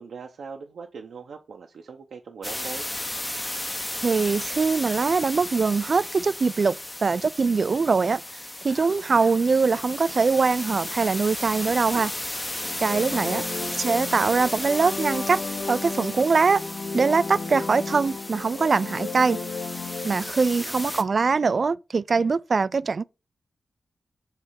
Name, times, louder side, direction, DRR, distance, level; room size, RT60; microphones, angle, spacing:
voice 1, 0.0-2.9 13.1-13.7 20.6-21.1, right 5 dB, 80° right, 0.8 m, -41 dB
sound 1, 2.4-21.0, left 1 dB, 15° left, 0.7 m, -34 dB
voice 2, 4.0-6.8 7.0-8.2 8.6-12.1 12.8-13.4 13.8-15.4 15.7-16.6 16.9-19.4 20.0-23.0, right 4 dB, 45° right, 0.3 m, -22 dB
Cough, 8.7-9.5 9.7-10.0 10.6-11.0 11.5-12.2, left 4 dB, 80° left, 1.7 m, -46 dB
sound 2, 12.4-20.3, left 4 dB, 60° left, 0.9 m, -34 dB
7.9 x 3.3 x 5.6 m
wide cardioid pair, 140°, 0 cm